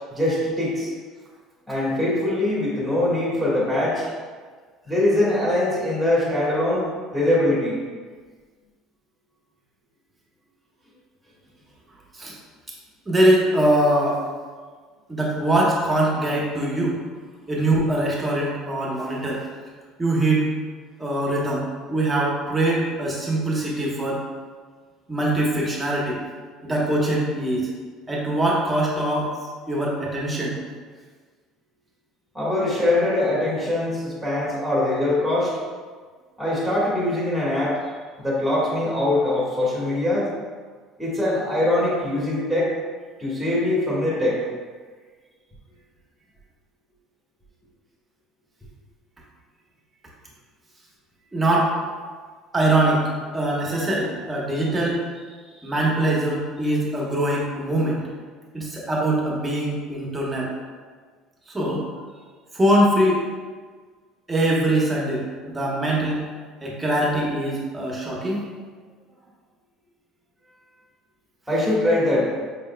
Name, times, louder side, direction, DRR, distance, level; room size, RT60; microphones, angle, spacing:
voice 1, 0.1-0.9 1.7-4.1 4.8-6.9 7.1-7.8 32.3-35.5 36.4-37.8 38.2-40.3 41.0-42.7 43.2-44.4 55.5-55.7 71.5-72.3, left 1 dB, ahead, -7 dB, 1.4 m, -22 dB
voice 2, 13.1-14.2 15.1-17.0 17.5-19.4 20.0-20.5 21.0-24.2 25.1-26.2 26.6-27.7 28.1-29.3 29.7-30.6 51.3-51.7 52.5-53.1 53.3-55.0 55.6-58.0 58.5-60.5 61.5-61.8 62.5-63.2 64.3-66.2 66.6-68.5, right 1 dB, 15° right, -4 dB, 1.0 m, -22 dB
5.2 x 3.6 x 2.2 m, 1.5 s
cardioid pair, 115°, 0 cm